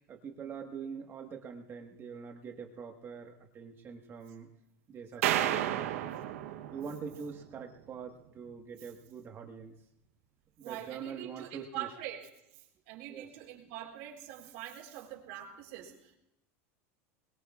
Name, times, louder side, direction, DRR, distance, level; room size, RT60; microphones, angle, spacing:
voice 1, 0.0-4.5 4.9-5.9 6.7-9.7 10.6-11.9 13.1-13.3, right 6 dB, 30° right, 2 dB, 1.5 m, -44 dB
voice 2, 5.2-5.7 10.6-16.2, right 12 dB, 65° right, 0 dB, 3.9 m, -44 dB
sound 1, 5.2-7.5, right 12 dB, 85° right, 1.0 m, -32 dB
22.0 x 21.5 x 2.5 m, 0.86 s
supercardioid pair, 135°, 8 cm